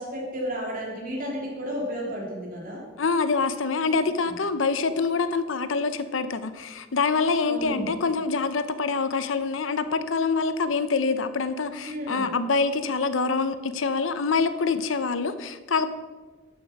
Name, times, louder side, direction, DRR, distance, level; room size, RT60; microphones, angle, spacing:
voice 1, 0.0-2.8 4.3-4.4 7.3-7.9 11.8-12.3, equal, 45° right, -2 dB, 3.1 m, -32 dB
voice 2, 3.0-15.9, left 4 dB, 80° left, 12 dB, 0.7 m, -25 dB
12.0 x 7.3 x 5.9 m, 1.3 s
head